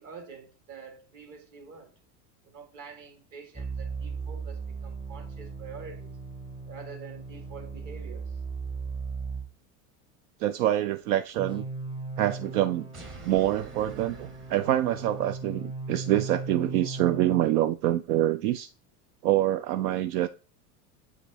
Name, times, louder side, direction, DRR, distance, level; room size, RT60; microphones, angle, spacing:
voice 1, 0.0-1.9 2.4-6.1 6.7-8.4, right 5 dB, 45° right, 1.8 m, -46 dB
sound 1, 3.5-9.5 11.4-17.5, right 4 dB, 10° right, 0.6 m, -37 dB
voice 2, 10.4-11.6 12.2-12.9 13.2-18.7 19.2-20.3, right 13 dB, 75° right, 0.6 m, -26 dB
sound 2, 12.9-15.5, right 3 dB, 25° right, 1.5 m, -47 dB
7.7 x 5.0 x 2.7 m
supercardioid pair, 130°, 45 cm